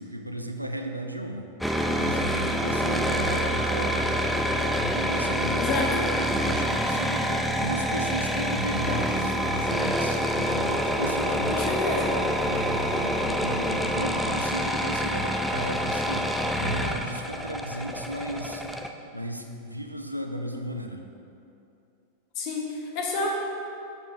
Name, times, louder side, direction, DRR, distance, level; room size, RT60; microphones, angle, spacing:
voice 1, 0.0-1.5 2.0-4.1 4.8-5.8 6.3-11.8 12.4-18.7 19.1-21.0, equal, 90° right, 4 dB, 0.5 m, -35 dB
sound 1, 1.6-18.9, equal, ahead, 0.4 m, -27 dB
voice 2, 5.6-5.9 11.5-12.1 22.4-23.3, left 3 dB, 40° left, -1 dB, 1.2 m, -29 dB
7.9 x 7.2 x 2.9 m, 2.7 s
figure-of-eight pair, 90°, 0 cm